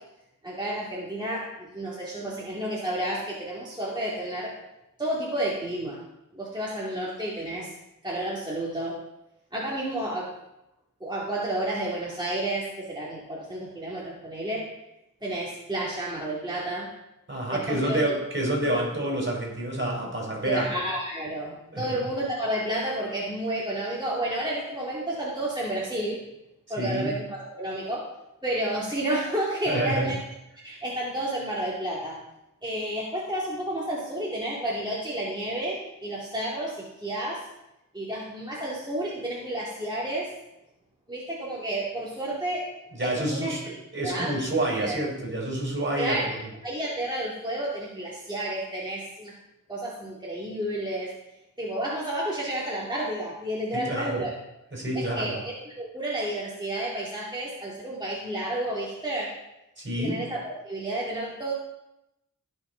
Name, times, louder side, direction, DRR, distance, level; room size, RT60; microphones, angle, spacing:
voice 1, 0.4-4.5 5.0-6.0 6.3-7.7 8.0-8.9 9.5-10.3 11.0-14.6 15.2-16.9 17.5-18.2 18.6-18.8 20.4-26.2 26.7-28.0 28.4-30.2 30.6-32.2 32.6-37.4 37.9-40.3 41.1-42.6 43.0-43.6 44.0-44.3 44.8-45.0 46.0-46.3 46.6-49.3 49.7-51.1 51.6-54.3 54.9-59.3 60.0-61.5, right 1 dB, 15° right, -7 dB, 2.6 m, -31 dB
voice 2, 17.3-20.7 21.7-22.0 26.8-27.2 29.7-30.1 42.9-46.5 53.7-54.2 54.7-55.4 59.8-60.2, right 1 dB, 35° right, -2 dB, 4.3 m, -28 dB
16.5 x 6.1 x 4.0 m, 0.90 s
wide cardioid pair, 60°, 33 cm